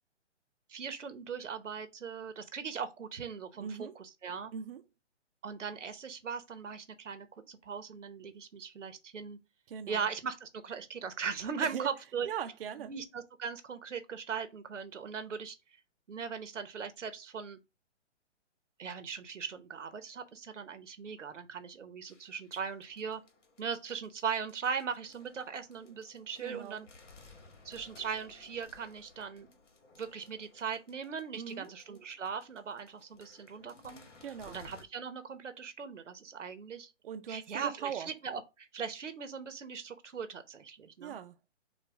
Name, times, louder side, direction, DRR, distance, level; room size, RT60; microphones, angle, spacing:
voice 1, 0.7-4.5 5.4-9.4 9.9-12.3 12.8-15.6 16.1-17.6 18.8-23.2 23.6-26.9 27.6-29.5 30.0-36.9 37.3-41.2, right 6 dB, 85° right, 1.0 m, -39 dB
voice 2, 3.6-3.9 4.5-4.8 9.7-10.1 11.6-11.9 12.2-12.9 26.4-26.8 31.3-31.7 34.2-34.6 37.0-38.1 41.0-41.5, right 8 dB, 50° right, 0.5 m, -40 dB
sound 1, 22.1-34.8, left 3 dB, 80° left, 1.5 m, -59 dB
6.1 x 2.4 x 3.5 m
hypercardioid pair, 145°, 36 cm